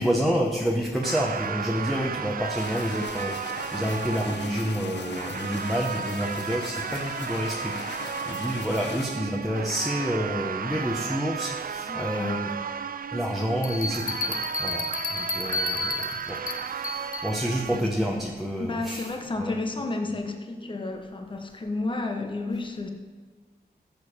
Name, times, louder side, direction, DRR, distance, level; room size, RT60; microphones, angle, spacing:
voice 1, 0.0-12.5 13.1-14.8 15.1-16.4 16.6-19.1 19.4-19.5, equal, ahead, -1 dB, 1.0 m, -29 dB
sound 1, 1.0-17.8, right 7 dB, 55° right, 0.4 m, -34 dB
sound 2, 2.6-9.1, left 7 dB, 85° left, 0.5 m, -39 dB
voice 2, 11.9-12.4 17.7-17.9 18.6-22.9, left 2 dB, 30° left, 4 dB, 1.1 m, -31 dB
sound 3, 13.6-17.3, left 2 dB, 50° left, 1.0 m, -31 dB
13.0 x 7.0 x 5.1 m, 1.5 s
wide cardioid pair, 130°, 17 cm